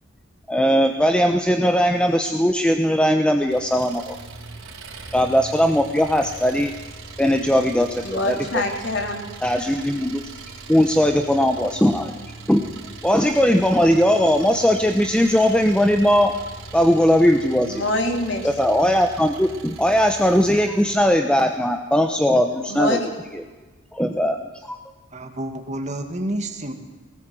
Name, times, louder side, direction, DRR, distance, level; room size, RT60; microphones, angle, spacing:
voice 1, 0.5-4.2 5.1-6.7 7.2-8.6 9.4-10.2 10.7-12.1 12.5-12.7 13.0-16.3 16.7-17.8 18.4-23.0 23.3-23.4 23.9-24.8, equal, 5° left, 5 dB, 0.9 m, -19 dB
Engine, 3.5-21.0, right 3 dB, 80° right, 4.4 m, -40 dB
voice 2, 8.0-9.2 17.7-18.5 22.7-23.0, left 1 dB, 60° left, 2 dB, 3.9 m, -24 dB
voice 3, 25.1-26.7, right 1 dB, 35° right, 5 dB, 2.2 m, -29 dB
21.0 x 19.0 x 7.7 m, 1.2 s
head